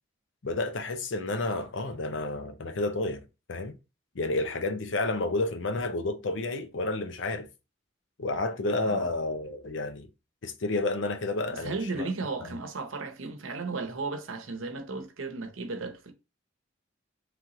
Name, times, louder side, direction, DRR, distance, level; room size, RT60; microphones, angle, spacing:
voice 1, 0.4-3.2 3.5-3.8 4.1-7.5 8.2-10.1 10.4-12.1 12.5-12.6, left 2 dB, 65° left, 0.7 m, -30 dB
voice 2, 11.5-16.1, right 3 dB, 85° right, 0.8 m, -35 dB
3.3 x 3.1 x 3.7 m
head